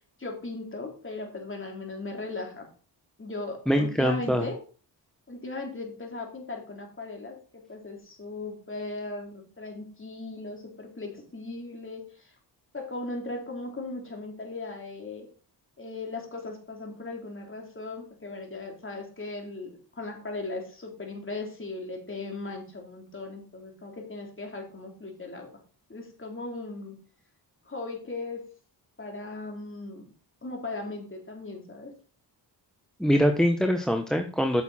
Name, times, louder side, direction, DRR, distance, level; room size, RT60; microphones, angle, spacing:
voice 1, 0.2-2.7 3.2-4.6 5.3-12.3 12.7-15.3 15.8-25.5 25.9-27.0 27.7-28.5 29.0-30.1 30.4-31.9, left 2 dB, 30° left, 1 dB, 3.9 m, -38 dB
voice 2, 3.7-4.4 33.0-34.6, equal, ahead, 6 dB, 1.1 m, -23 dB
8.8 x 6.8 x 4.3 m, 0.39 s
cardioid pair, 75°, 44 cm